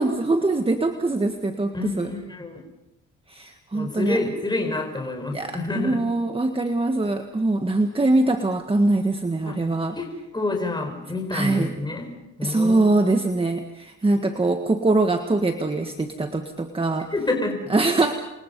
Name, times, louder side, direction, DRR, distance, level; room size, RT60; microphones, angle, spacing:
voice 1, 0.0-2.1 3.3-4.2 5.3-10.0 11.3-11.7 12.4-17.1 17.7-18.1, right 2 dB, 20° right, 6 dB, 1.7 m, -23 dB
voice 2, 1.7-2.6 3.7-6.0 9.5-9.6 10.0-10.1 10.3-12.1 12.4-12.8 17.1-17.7, left 2 dB, 15° left, 3 dB, 4.9 m, -28 dB
28.5 x 23.5 x 5.4 m, 0.95 s
cardioid pair, 90°, 30 cm